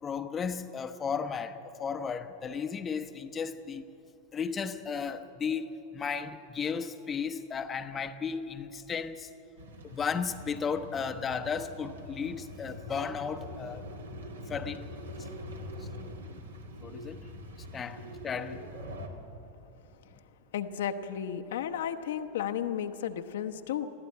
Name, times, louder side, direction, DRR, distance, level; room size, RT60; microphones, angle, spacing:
voice 1, 0.0-3.8 4.3-9.3 9.8-13.9 14.5-14.9 15.8-15.9 16.8-17.2 17.7-18.6, left 6 dB, 20° left, 0.8 m, -34 dB
sound 1, 9.6-19.1, left 1 dB, 70° right, 2.1 m, -44 dB
voice 2, 20.5-23.9, left 9 dB, 60° left, 0.9 m, -33 dB
22.5 x 15.0 x 8.5 m
figure-of-eight pair, 90°, 0 cm